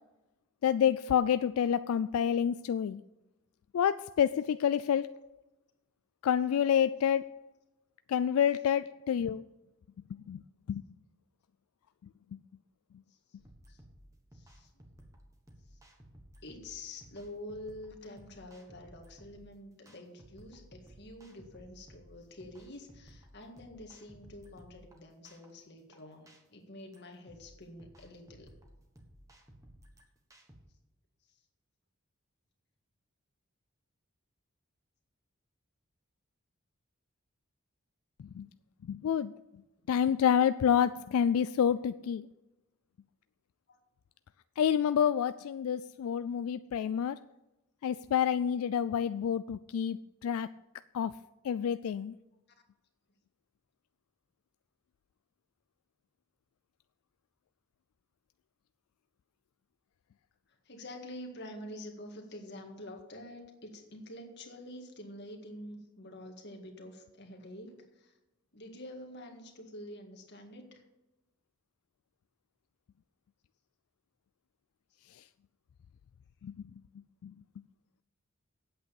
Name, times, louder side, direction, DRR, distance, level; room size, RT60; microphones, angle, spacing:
voice 1, 0.6-3.0 3.7-5.1 6.2-7.3 8.1-9.4 10.3-10.4 10.7-10.8 38.4-38.5 38.9-39.3 39.9-42.2 44.6-47.2 47.8-50.0 50.2-50.5 50.9-51.1 51.4-52.1 76.4-76.5 77.2-77.3, left 8 dB, 80° left, 0.3 m, -28 dB
sound 1, 13.4-30.6, equal, 15° right, 1.4 m, -57 dB
voice 2, 14.3-14.7 15.7-15.8 16.4-28.5 43.7-43.8 60.7-68.1 68.5-70.8 74.9-75.0, left 1 dB, 50° left, 1.8 m, -47 dB
8.9 x 8.1 x 7.0 m
head